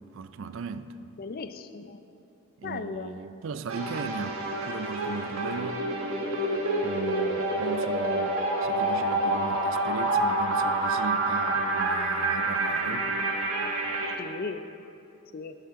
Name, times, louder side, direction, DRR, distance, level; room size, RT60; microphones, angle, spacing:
voice 1, 0.1-0.9 2.6-5.9 6.8-13.2, right 4 dB, 65° right, 0.4 m, -37 dB
voice 2, 1.2-2.0 2.6-3.2 14.2-14.6 15.3-15.6, left 4 dB, 45° left, 0.4 m, -36 dB
sound 1, 3.7-14.2, right 2 dB, 85° right, 1.2 m, -28 dB
13.5 x 7.6 x 3.6 m
head